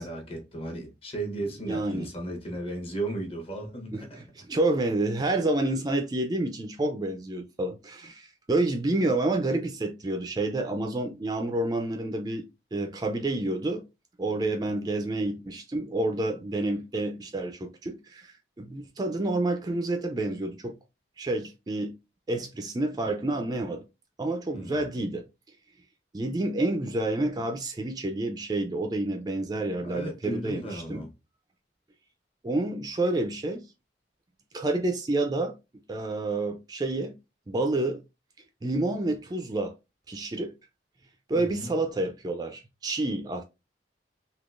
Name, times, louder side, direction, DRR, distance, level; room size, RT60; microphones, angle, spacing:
voice 1, 0.0-4.3 24.5-24.8 29.8-31.1 41.3-41.7, right 2 dB, 35° left, 0.9 m, -35 dB
voice 2, 1.7-2.1 3.9-4.0 4.4-12.4 12.7-13.8 14.2-20.7 21.2-21.9 22.3-23.8 24.2-25.2 26.1-31.0 32.4-33.6 34.5-35.6 35.9-37.2 37.5-38.0 38.6-39.7 40.1-40.5 41.3-43.4, right 2 dB, 20° right, 0.3 m, -29 dB
3.6 x 2.7 x 2.4 m
head